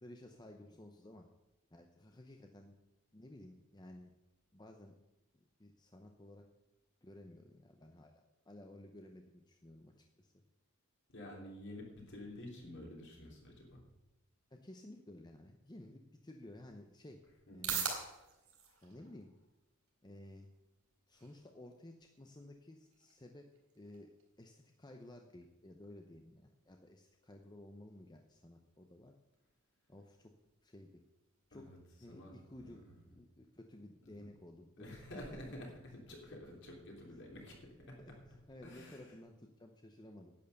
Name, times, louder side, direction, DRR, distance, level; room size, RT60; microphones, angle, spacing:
voice 1, 0.0-1.3 1.7-2.8 3.1-4.1 4.5-4.9 5.3-6.4 7.0-10.4 14.5-17.2 17.5-17.9 18.8-19.3 20.0-20.5 21.1-23.5 23.7-24.1 24.4-29.2 29.9-30.3 30.6-31.0 31.5-31.7 32.0-34.9 37.1-37.2 38.0-40.3, left 1 dB, 20° left, 3 dB, 0.7 m, -55 dB
voice 2, 11.1-13.8 17.5-17.7 31.5-31.8 32.1-32.9 34.0-34.2 34.8-37.6 37.8-38.0 38.6-39.1, left 1 dB, 55° left, -1 dB, 3.4 m, -50 dB
sound 1, 16.2-33.1, right 6 dB, 70° right, 3.7 m, -50 dB
10.5 x 9.3 x 6.7 m, 0.96 s
head